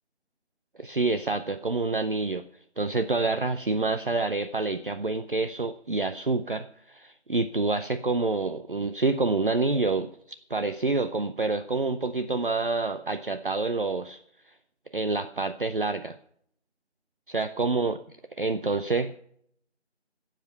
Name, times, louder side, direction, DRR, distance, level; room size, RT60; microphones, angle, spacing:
voice 1, 0.8-2.4 2.8-10.1 10.5-14.2 14.5-14.6 14.9-16.2 17.3-18.0 18.4-19.2, right 3 dB, 50° right, 10 dB, 0.5 m, -27 dB
14.5 x 7.4 x 5.5 m, 0.68 s
figure-of-eight pair, 165°, 34 cm